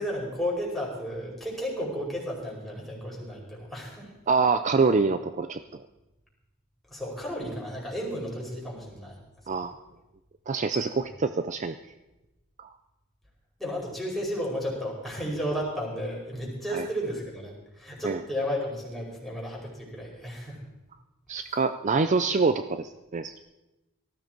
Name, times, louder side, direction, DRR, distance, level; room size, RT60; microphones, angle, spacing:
voice 1, 0.0-4.1 6.9-9.2 11.1-11.2 13.6-20.6, equal, ahead, -4 dB, 5.0 m, -33 dB
voice 2, 4.3-5.6 9.5-9.8 10.5-11.7 12.6-12.7 16.7-16.9 18.0-18.2 21.3-23.4, right 4 dB, 35° right, 10 dB, 0.5 m, -25 dB
18.5 x 14.5 x 4.6 m, 1.0 s
head